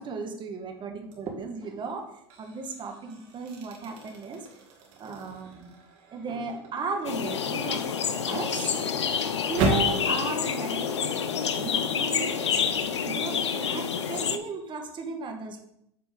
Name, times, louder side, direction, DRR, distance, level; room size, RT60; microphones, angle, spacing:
voice 1, 0.0-4.5 5.0-5.7 6.1-7.8 8.2-9.2 9.5-11.0 11.6-12.3 12.7-15.6, right 4 dB, 35° right, 4 dB, 1.6 m, -35 dB
sound 1, 1.1-1.4 2.0-10.0, right 2 dB, 60° right, 2.1 m, -35 dB
sound 2, 7.0-14.4, left 7 dB, 90° left, 0.6 m, -28 dB
8.2 x 4.3 x 5.3 m, 0.75 s
hypercardioid pair, 85°, 14 cm